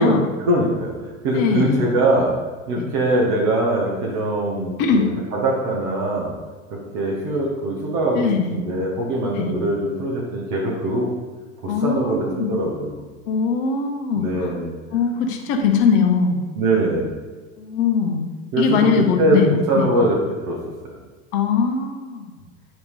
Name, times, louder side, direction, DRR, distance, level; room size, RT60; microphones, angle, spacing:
voice 1, 0.0-2.3 2.7-6.3 6.7-11.1 11.6-13.1 14.1-14.7 16.6-17.1 18.5-19.4 19.7-20.6 20.8-21.0, right 1 dB, 50° right, -3 dB, 1.9 m, -22 dB
voice 2, 1.3-1.8 2.8-2.9 4.8-5.1 8.1-8.5 9.4-9.5 11.7-12.5 13.3-14.5 14.9-16.4 17.6-18.2 18.6-19.9 21.3-22.3, left 5 dB, 60° left, 3 dB, 1.3 m, -21 dB
9.6 x 3.6 x 5.0 m, 1.4 s
hypercardioid pair, 85°, 40 cm